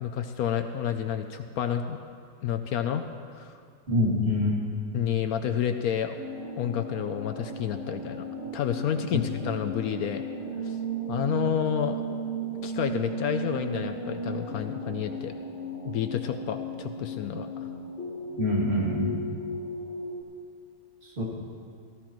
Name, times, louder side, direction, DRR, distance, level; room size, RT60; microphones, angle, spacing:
voice 1, 0.0-2.0 2.4-3.1 3.3-3.6 4.9-6.2 6.6-8.2 8.5-10.2 10.6-10.8 11.1-12.0 12.6-15.3 15.8-17.7, left 9 dB, 70° left, 7 dB, 0.8 m, -30 dB
voice 2, 3.9-4.6 9.1-9.2 18.4-19.2 21.2-21.3, left 1 dB, 35° right, -5 dB, 2.7 m, -25 dB
sound 1, 6.2-20.2, right 2 dB, 35° left, 1.6 m, -35 dB
18.0 x 14.0 x 3.0 m, 2.3 s
omnidirectional pair, 2.0 m